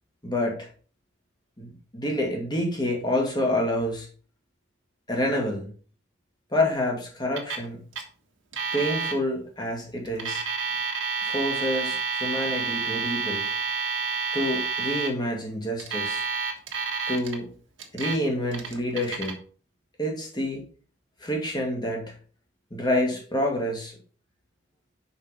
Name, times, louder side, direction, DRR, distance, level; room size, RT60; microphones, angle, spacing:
voice 1, 0.2-0.7 1.6-4.1 5.1-5.7 6.5-7.8 8.7-10.4 11.2-13.5 14.3-16.2 17.1-17.5 17.9-19.4 20.0-20.6 21.2-22.1 22.7-23.9, left 1 dB, 20° left, 0 dB, 1.9 m, -28 dB
Alarm, 7.4-7.7 7.9-8.0 8.5-9.1 10.1-15.1 15.8-17.3 17.8-18.2 18.5-19.3, right 5 dB, 75° right, 1.5 m, -29 dB
5.8 x 5.7 x 5.0 m, 0.41 s
head